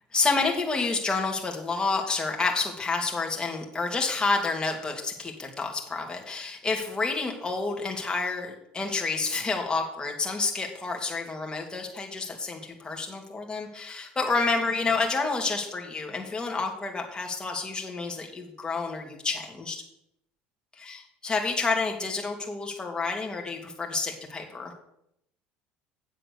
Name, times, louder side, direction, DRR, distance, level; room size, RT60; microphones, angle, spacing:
voice 1, 0.1-19.8 20.7-24.7, left 4 dB, 20° left, 1 dB, 2.7 m, -29 dB
9.1 x 7.6 x 6.8 m, 0.78 s
supercardioid pair, 95°, 4 cm